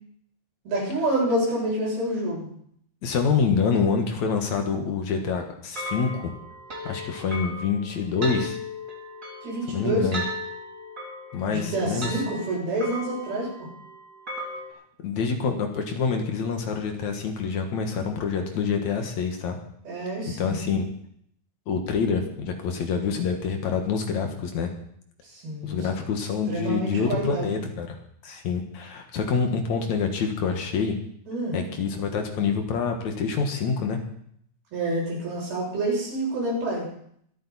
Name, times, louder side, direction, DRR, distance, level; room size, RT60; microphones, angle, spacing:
voice 1, 0.7-2.5 9.4-10.1 11.5-13.7 19.9-20.8 25.2-25.8 26.5-27.6 31.3-31.6 34.7-36.9, right 1 dB, 65° right, -5 dB, 9.2 m, -28 dB
voice 2, 3.0-6.3 6.8-8.6 9.7-10.2 11.3-12.2 15.0-19.6 20.3-20.8 21.7-24.7 25.6-28.0 28.2-31.0 31.5-34.0, left 5 dB, 55° left, 4 dB, 2.3 m, -26 dB
sound 1, 5.8-14.7, equal, 20° right, 3.1 m, -36 dB
24.5 x 8.7 x 4.3 m, 0.68 s
omnidirectional pair, 4.8 m